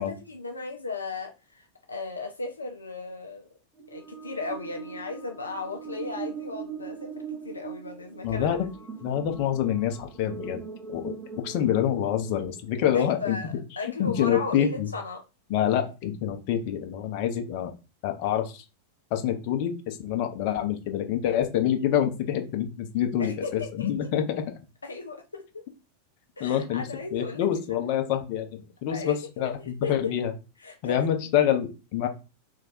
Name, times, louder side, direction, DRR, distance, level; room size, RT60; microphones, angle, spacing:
voice 1, 0.0-3.4 3.9-8.5 12.9-15.2 23.2-23.9 24.8-25.6 26.4-27.4 27.7-27.8 28.9-29.1 29.6-30.1 30.6-31.0, left 4 dB, 80° left, 3 dB, 0.5 m, -36 dB
sound 1, 3.8-13.1, right 6 dB, 15° right, 1.1 m, -41 dB
voice 2, 8.2-8.7 9.0-10.6 10.9-13.4 13.8-14.9 15.5-17.7 18.0-18.6 19.1-24.4 26.4-30.3 30.8-32.1, left 10 dB, 45° left, 5 dB, 0.8 m, -26 dB
3.4 x 2.6 x 4.0 m, 0.30 s
figure-of-eight pair, 90°, 0 cm